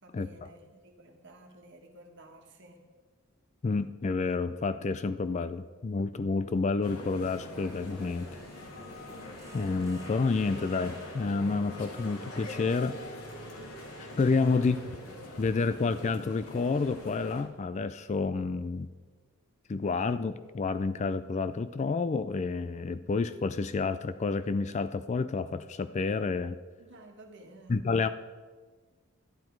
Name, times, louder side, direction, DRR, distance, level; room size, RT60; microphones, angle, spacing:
voice 1, 0.0-2.8 14.5-15.2 26.8-27.9, right 1 dB, 55° right, 3 dB, 1.6 m, -53 dB
voice 2, 3.6-8.3 9.5-13.0 14.0-14.8 15.4-18.9 19.7-26.6 27.7-28.1, left 4 dB, 30° left, 12 dB, 0.3 m, -29 dB
sound 1, 6.8-17.4, left 1 dB, 75° left, 2.3 m, -43 dB
sound 2, 7.7-11.5, right 3 dB, 15° right, 1.2 m, -58 dB
12.0 x 11.0 x 4.6 m, 1.4 s
head